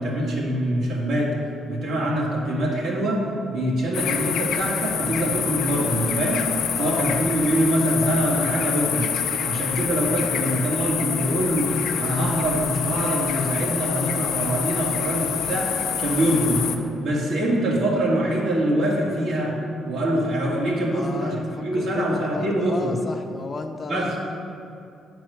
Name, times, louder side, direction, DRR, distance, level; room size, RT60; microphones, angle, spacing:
voice 1, 0.0-1.4 1.7-3.2 3.5-6.4 6.8-9.1 9.4-16.7 17.0-19.6 19.8-23.0 23.9-24.2, right 1 dB, 75° right, -4 dB, 2.2 m, -24 dB
sound 1, 3.9-16.8, left 8 dB, 85° left, 0.6 m, -27 dB
voice 2, 6.7-7.3 20.9-24.2, left 3 dB, 40° left, 5 dB, 0.7 m, -33 dB
8.6 x 4.6 x 6.4 m, 2.7 s
cardioid pair, 90°, 0 cm